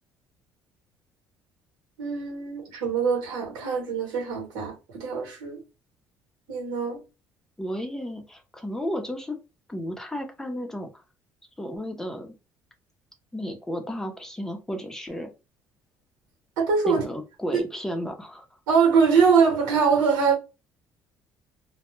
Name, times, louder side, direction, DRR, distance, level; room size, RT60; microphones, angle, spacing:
voice 1, 2.0-5.6 6.5-7.0 16.6-17.0 17.5-17.6 18.7-20.4, right 5 dB, 90° right, 1.0 m, -23 dB
voice 2, 7.6-9.4 9.7-10.9 11.6-12.3 13.3-15.3 16.9-18.5, equal, 5° left, 0.6 m, -33 dB
2.1 x 2.1 x 3.0 m
cardioid pair, 120°, 7 cm